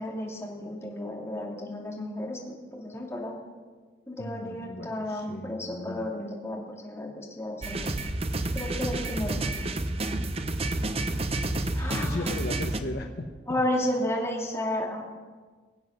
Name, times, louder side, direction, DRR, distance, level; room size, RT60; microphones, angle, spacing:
voice 1, 0.0-3.3 4.1-7.9 8.5-9.4 11.7-12.3 13.5-15.0, left 1 dB, 15° left, -2 dB, 2.7 m, -32 dB
voice 2, 4.2-6.1 11.9-13.6, left 1 dB, 60° left, 5 dB, 1.0 m, -36 dB
sound 1, 7.6-12.8, right 2 dB, 35° right, 0.8 m, -30 dB
22.0 x 8.0 x 6.4 m, 1.4 s
head